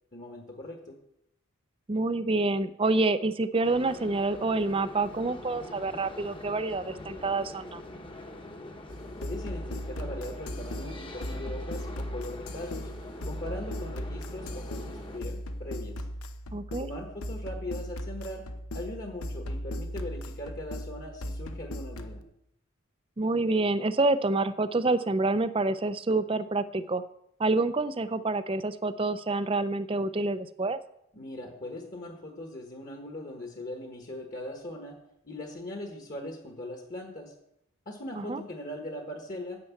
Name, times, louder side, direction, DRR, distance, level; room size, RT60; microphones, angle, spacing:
voice 1, 0.1-0.9 9.2-12.9 13.2-16.0 16.8-18.4 18.7-22.2 31.1-35.0 35.2-37.3 37.8-39.6, left 1 dB, 40° left, 2 dB, 1.4 m, -40 dB
voice 2, 1.9-7.8 16.5-16.9 23.2-27.0 27.4-30.8 38.2-38.4, right 2 dB, 25° right, 13 dB, 0.5 m, -27 dB
sound 1, 3.6-15.2, left 1 dB, 25° left, 1.1 m, -44 dB
sound 2, 8.9-22.2, equal, 85° left, 1.0 m, -37 dB
9.7 x 6.8 x 8.3 m, 0.79 s
head